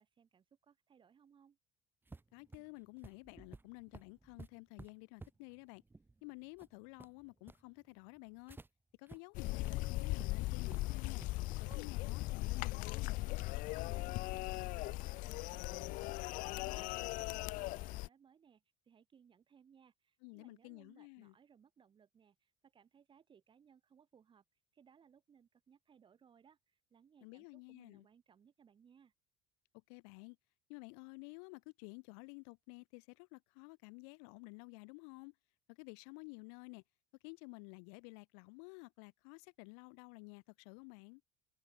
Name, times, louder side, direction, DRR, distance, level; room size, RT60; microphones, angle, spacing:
voice 1, 0.0-1.6 13.9-24.4 24.7-29.1, right 7 dB, 35° right, 3.5 m, -66 dB
sound 1, 2.1-8.7 9.1-9.2 9.5-9.7 10.2-10.3 10.7-11.3 11.7-11.9, right 3 dB, 15° right, 2.0 m, -55 dB
voice 2, 2.3-5.8 6.2-8.6 9.0-11.2 11.6-13.4 20.2-21.3 27.2-28.1 29.9-30.4 30.7-35.3 35.7-36.8 37.2-41.2, left 39 dB, 85° left, 1.4 m, -52 dB
sound 2, 9.3-18.1, left 20 dB, 65° left, 0.5 m, -39 dB
supercardioid pair, 110°, 15 cm